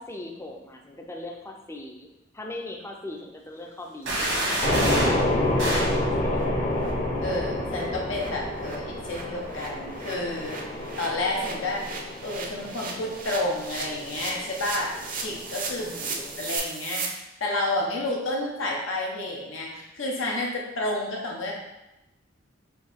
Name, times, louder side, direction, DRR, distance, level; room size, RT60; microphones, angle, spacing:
voice 1, 0.0-2.1 2.3-6.7 15.8-16.4, left 1 dB, 15° left, 2 dB, 0.4 m, -40 dB
sound 1, 4.1-4.2 4.5-4.6 5.0-5.1 5.4-5.5 5.9-6.0 6.3-6.4 6.8-6.9 7.2-17.1, right 4 dB, 45° right, 0.6 m, -37 dB
sound 2, 4.1-5.2 5.6-6.0, right 1 dB, 80° right, 1.3 m, -27 dB
sound 3, 4.6-16.6, left 1 dB, 45° left, 0.8 m, -29 dB
voice 2, 7.2-11.8 12.2-14.9 15.2-17.0 17.4-21.5, left 2 dB, 85° left, -2 dB, 0.8 m, -30 dB
4.4 x 2.7 x 3.4 m, 0.93 s
head